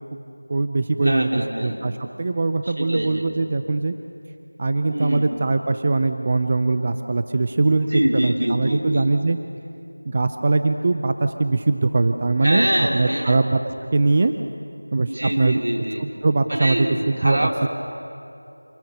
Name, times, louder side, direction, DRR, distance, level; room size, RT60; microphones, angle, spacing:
voice 1, 0.5-3.9 4.6-9.4 10.1-13.6 13.9-14.3 14.9-15.6 16.0-17.7, right 3 dB, 25° right, 8 dB, 0.5 m, -21 dB
voice 2, 1.0-1.8 2.8-3.4 4.9-5.3 7.9-9.0 12.4-13.4 15.0-16.0 16.5-17.7, equal, 75° right, 1 dB, 3.8 m, -24 dB
27.5 x 19.0 x 6.7 m, 2.7 s
figure-of-eight pair, 175°, 0 cm